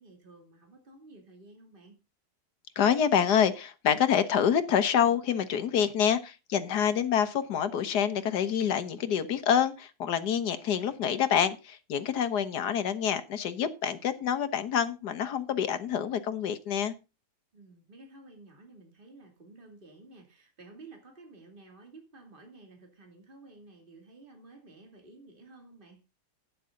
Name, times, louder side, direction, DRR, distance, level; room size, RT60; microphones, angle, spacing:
voice 1, 0.0-2.0 12.0-12.8 17.5-26.0, right 2 dB, 30° right, 2.8 m, -53 dB
voice 2, 2.8-16.9, left 8 dB, 75° left, 1.7 m, -27 dB
11.5 x 9.5 x 3.8 m
omnidirectional pair, 1.8 m